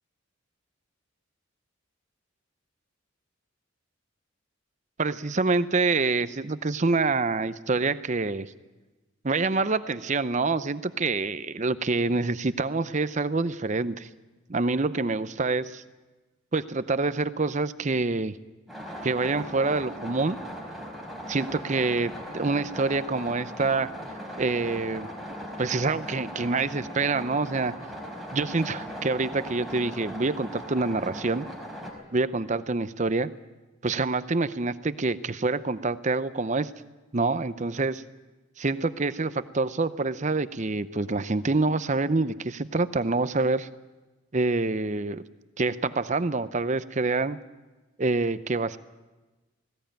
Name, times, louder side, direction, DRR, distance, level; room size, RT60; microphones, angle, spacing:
voice 1, 5.0-8.5 9.2-14.1 14.5-15.8 16.5-18.3 19.0-20.4 21.3-23.9 24.4-25.1 25.6-27.7 28.3-31.5 32.1-33.3 33.8-36.7 37.1-38.0 38.6-43.7 44.3-45.2 45.6-47.4 48.0-48.8, right 3 dB, 35° right, 14 dB, 0.7 m, -26 dB
sound 1, 18.7-31.9, equal, ahead, 4.6 m, -39 dB
19.5 x 17.5 x 8.9 m, 1.2 s
head